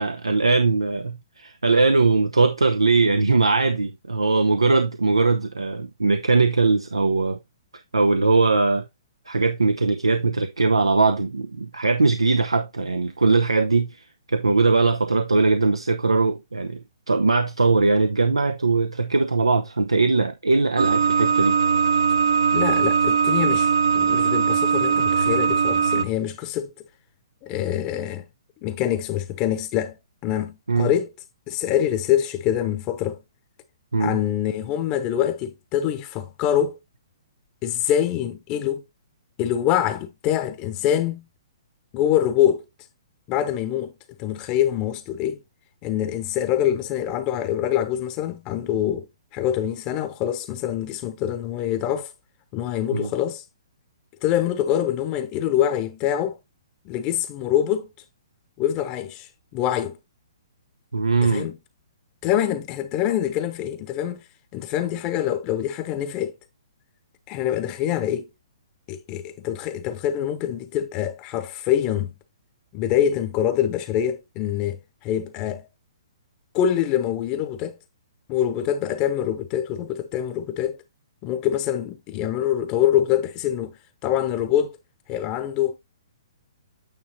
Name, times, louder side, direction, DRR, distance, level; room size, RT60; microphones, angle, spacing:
voice 1, 0.0-7.4 7.9-8.9 9.3-21.6 30.7-30.9 33.9-34.2 52.9-53.1 60.9-61.5, right 3 dB, 85° right, 0.7 m, -20 dB
sound 1, 20.8-26.0, right 6 dB, 65° right, 1.0 m, -20 dB
voice 2, 22.5-23.7 23.9-26.7 27.4-28.2 28.6-30.0 30.2-31.1 31.5-33.2 34.0-36.8 37.6-38.8 39.4-41.2 41.9-42.6 43.3-43.9 44.2-45.4 45.8-49.1 49.3-52.1 52.5-53.4 54.2-56.4 56.8-57.9 58.6-60.0 61.2-61.6 62.2-64.2 64.5-66.3 67.3-68.3 68.9-72.1 72.7-75.7 76.5-77.8 78.3-80.8 81.2-83.8 84.0-84.8 85.1-85.8, left 10 dB, 30° left, 0.9 m, -25 dB
9.2 x 3.3 x 4.0 m
figure-of-eight pair, 125°, 3 cm